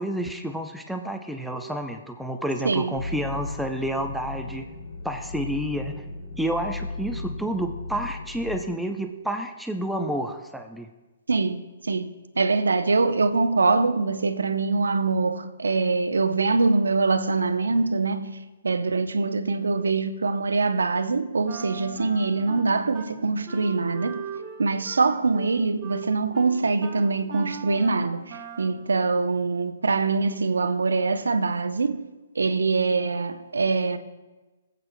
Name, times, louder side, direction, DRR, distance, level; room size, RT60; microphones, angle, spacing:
voice 1, 0.0-4.7 5.0-6.0 6.4-10.9, right 1 dB, ahead, 0.5 m, -30 dB
sound 1, 2.9-8.6, left 3 dB, 75° left, 2.7 m, -35 dB
voice 2, 11.3-24.3 24.6-32.1 32.4-34.0, right 3 dB, 85° right, 0.6 m, -24 dB
Wind instrument woodwind instrument, 21.4-23.1 23.5-28.8, right 5 dB, 30° right, 1.5 m, -39 dB
20.5 x 8.0 x 2.2 m
hypercardioid pair, 140°, 0 cm